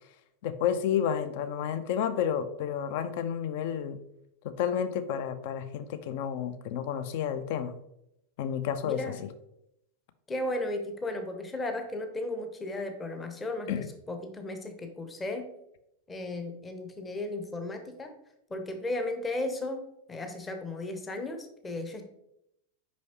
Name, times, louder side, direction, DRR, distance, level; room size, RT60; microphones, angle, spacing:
voice 1, 0.4-4.0 4.4-7.7 8.4-9.3 13.7-13.9, left 8 dB, 50° left, 12 dB, 0.5 m, -31 dB
voice 2, 8.8-9.2 10.3-15.5 16.1-18.1 18.5-22.1, left 2 dB, 15° left, 6 dB, 0.8 m, -35 dB
6.2 x 5.3 x 2.8 m, 0.80 s
figure-of-eight pair, 90°, 0 cm